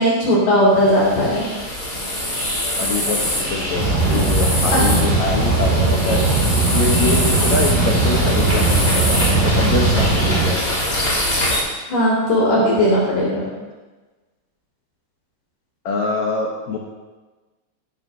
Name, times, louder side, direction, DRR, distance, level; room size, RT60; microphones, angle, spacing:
voice 1, 0.0-1.5 4.1-4.2 10.3-10.4 11.9-13.5, equal, 60° left, -6 dB, 4.7 m, -17 dB
sound 1, 0.7-11.6, left 1 dB, 25° left, 3.4 m, -23 dB
voice 2, 2.8-6.3 6.7-10.8 15.8-16.8, left 4 dB, 85° left, -1 dB, 1.6 m, -24 dB
sound 2, 3.7-10.5, right 3 dB, 80° right, 3.5 m, -19 dB
16.5 x 11.5 x 2.8 m, 1.2 s
omnidirectional pair, 5.2 m